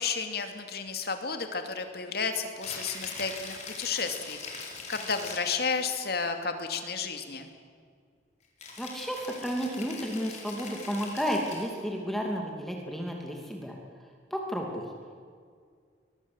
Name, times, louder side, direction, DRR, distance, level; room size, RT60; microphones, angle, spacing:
voice 1, 0.0-7.5, left 5 dB, 55° left, 6 dB, 2.6 m, -32 dB
Rattle (instrument), 2.5-5.7 8.6-11.8, left 4 dB, 40° left, 4.9 m, -42 dB
voice 2, 8.8-13.8 14.3-14.9, equal, ahead, 0 dB, 2.6 m, -32 dB
23.0 x 22.5 x 8.0 m, 2.1 s
head